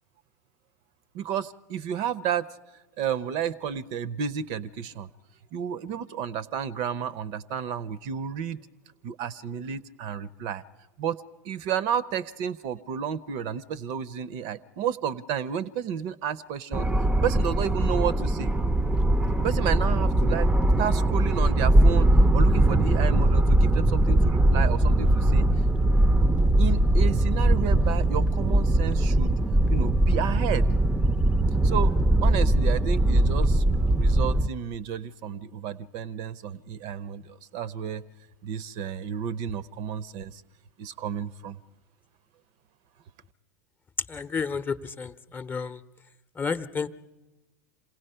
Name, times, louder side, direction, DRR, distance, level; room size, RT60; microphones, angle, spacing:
voice 1, 1.1-2.5 3.0-5.1 5.5-8.6 9.0-10.6 11.0-11.2 11.4-16.9 17.2-18.5 19.4-20.5 20.8-25.5 26.6-29.3 29.7-30.7 31.6-32.0 32.2-33.6 33.9-38.0 38.4-40.4 40.8-41.6, right 8 dB, 50° right, 18 dB, 0.7 m, -31 dB
sound 1, 16.7-34.5, right 1 dB, 10° right, 0.6 m, -21 dB
voice 2, 44.1-45.8 46.4-46.9, left 5 dB, 20° left, 11 dB, 0.8 m, -31 dB
27.0 x 17.5 x 5.6 m, 1.0 s
hypercardioid pair, 90°, 10 cm